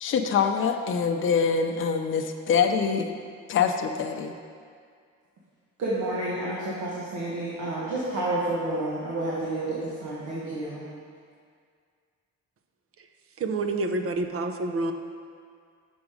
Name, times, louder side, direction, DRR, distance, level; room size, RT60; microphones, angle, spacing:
voice 1, 0.0-3.1 3.5-4.3, left 6 dB, 40° left, 5 dB, 0.5 m, -24 dB
voice 2, 5.8-10.9, right 1 dB, 75° right, -6 dB, 1.4 m, -30 dB
voice 3, 13.4-14.9, right 2 dB, 50° right, 6 dB, 0.7 m, -28 dB
6.2 x 6.1 x 4.9 m, 2.1 s
cardioid pair, 90°, 30 cm